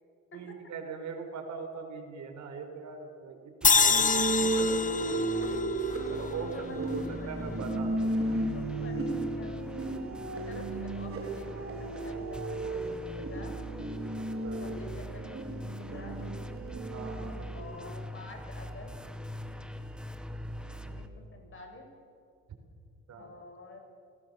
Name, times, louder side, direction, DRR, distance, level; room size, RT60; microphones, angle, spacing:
voice 1, 0.3-5.6 6.1-8.1 14.2-14.6 16.9-17.5 23.1-23.3, right 5 dB, 65° right, 4 dB, 4.8 m, -41 dB
sound 1, 3.6-6.9, left 5 dB, 25° left, 0.9 m, -27 dB
sound 2, 3.6-21.1, equal, 5° right, 2.0 m, -43 dB
sound 3, 3.9-17.6, right 2 dB, 45° right, 4.1 m, -34 dB
voice 2, 6.4-7.4 8.0-9.6 10.5-11.7 12.0-13.5 14.6-16.2 17.5-18.9 20.8-21.9 23.2-23.8, left 2 dB, 45° left, 3 dB, 6.7 m, -48 dB
30.0 x 19.5 x 7.2 m, 2.4 s
cardioid pair, 90°, 30 cm